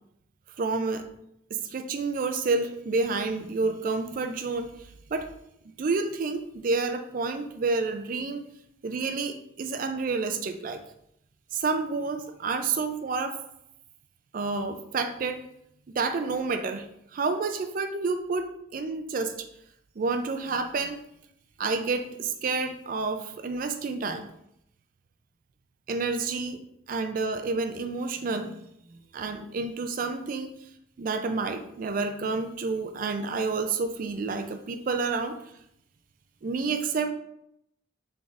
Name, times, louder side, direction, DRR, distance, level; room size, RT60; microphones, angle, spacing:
voice 1, 0.6-1.0 1.5-4.7 5.1-5.3 5.8-8.4 8.8-10.8 11.5-13.4 14.3-15.4 15.9-16.9 17.1-19.3 20.0-21.0 21.6-24.3 25.9-26.6 26.9-28.5 29.1-30.5 31.0-35.4 36.4-37.1, right 4 dB, 45° right, 8 dB, 0.4 m, -29 dB
4.0 x 3.5 x 2.4 m, 0.77 s
head